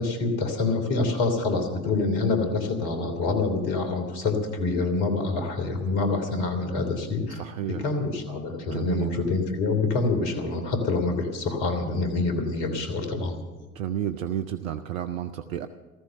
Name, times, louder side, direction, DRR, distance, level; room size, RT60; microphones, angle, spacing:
voice 1, 0.0-7.4 7.7-13.4, left 3 dB, 60° left, 7 dB, 3.2 m, -26 dB
voice 2, 7.4-7.8 8.7-9.1 13.7-15.7, right 10 dB, 75° right, 9 dB, 0.8 m, -31 dB
14.5 x 14.5 x 6.6 m, 1.3 s
figure-of-eight pair, 65°, 41 cm